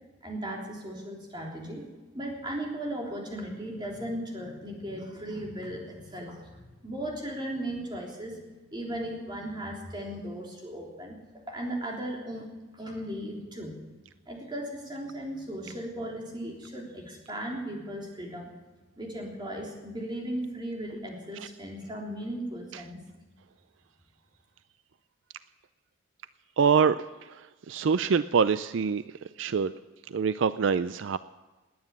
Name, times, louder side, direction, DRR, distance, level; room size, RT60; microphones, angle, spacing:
voice 1, 0.2-1.9 2.1-11.2 11.5-12.5 12.7-13.8 14.3-18.5 19.0-23.0, right 1 dB, 20° right, -1 dB, 3.5 m, -37 dB
voice 2, 26.6-27.0 27.3-27.4 27.7-29.0 29.4-29.7 30.1-31.2, right 6 dB, 65° right, 14 dB, 0.4 m, -24 dB
19.5 x 9.6 x 7.4 m, 1.2 s
head